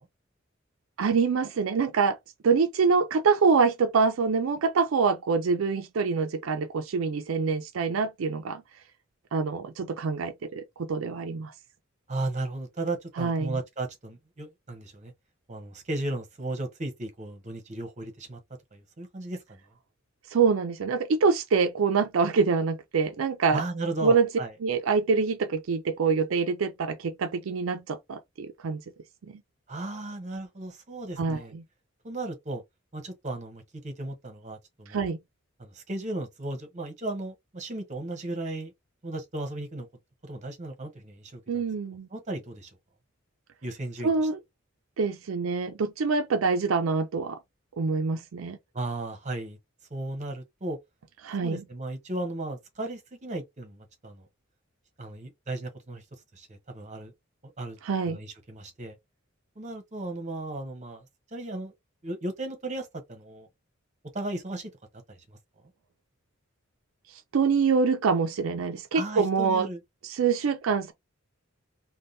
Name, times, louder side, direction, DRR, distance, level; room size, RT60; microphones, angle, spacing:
voice 1, 1.0-2.2 2.4-8.6 9.3-11.5 13.2-13.6 20.3-23.6 24.0-24.3 24.6-28.8 29.3-29.4 31.2-31.6 34.9-35.2 41.5-42.1 44.0-44.4 45.0-47.4 47.8-48.6 51.2-51.6 57.8-58.2 67.3-69.7 70.0-70.9, right 5 dB, 85° right, 0.4 m, -25 dB
voice 2, 12.1-15.1 15.5-18.4 18.7-19.6 23.5-24.5 29.7-31.5 32.0-32.6 32.9-35.0 35.6-38.7 39.0-39.9 40.2-41.4 42.1-42.7 43.6-44.1 48.7-49.6 49.9-50.8 51.4-54.3 55.0-56.0 56.3-57.1 57.6-57.8 58.1-59.0 59.6-61.0 61.3-61.7 62.0-63.5 64.1-64.7 65.1-65.4 68.9-69.8, right 2 dB, 35° right, 0.9 m, -35 dB
3.5 x 2.2 x 2.6 m
head